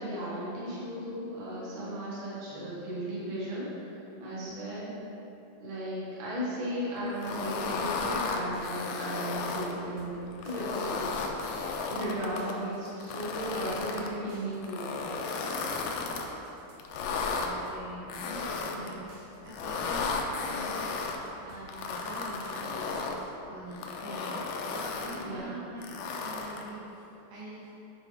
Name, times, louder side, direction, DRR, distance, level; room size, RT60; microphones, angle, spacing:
voice 1, 0.0-4.9 5.6-15.1 25.2-25.6, right 1 dB, 50° right, -8 dB, 2.1 m, -36 dB
voice 2, 4.2-4.5 17.4-20.1 20.5-21.0 21.4-23.0 23.5-27.7, right 1 dB, 85° right, -6 dB, 2.2 m, -44 dB
sound 1, 7.2-9.7 10.3-12.5 13.0-14.1 14.6-16.3 16.8-17.5 18.1-18.9 19.5-21.2 21.7-23.2 23.7-25.2 25.8-26.7, left 4 dB, 85° left, 2.7 m, -34 dB
sound 2, 8.1-23.4, right 1 dB, 70° right, 2.5 m, -55 dB
10.5 x 4.8 x 3.6 m, 2.9 s
omnidirectional pair, 5.7 m